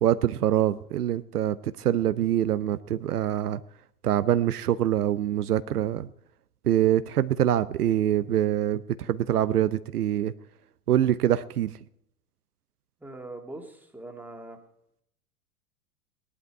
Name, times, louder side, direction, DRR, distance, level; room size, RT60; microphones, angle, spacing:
voice 1, 0.0-3.6 4.0-6.1 6.6-10.3 10.9-11.8, right 11 dB, 75° right, 13 dB, 0.7 m, -24 dB
voice 2, 13.0-14.6, right 2 dB, 5° right, 2 dB, 2.1 m, -42 dB
18.5 x 11.5 x 4.6 m, 0.76 s
figure-of-eight pair, 95°, 46 cm